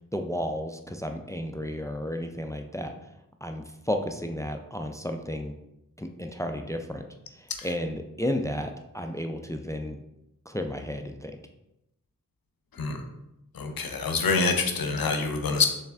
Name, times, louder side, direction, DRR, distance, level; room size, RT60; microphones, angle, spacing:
voice 1, 0.1-2.9 3.4-5.5 6.0-7.0 7.4-10.0 10.5-11.3, equal, 10° left, 5 dB, 0.3 m, -32 dB
voice 2, 13.5-15.7, left 4 dB, 80° left, 5 dB, 0.6 m, -26 dB
3.5 x 3.2 x 3.3 m, 0.88 s
wide cardioid pair, 45°, 35 cm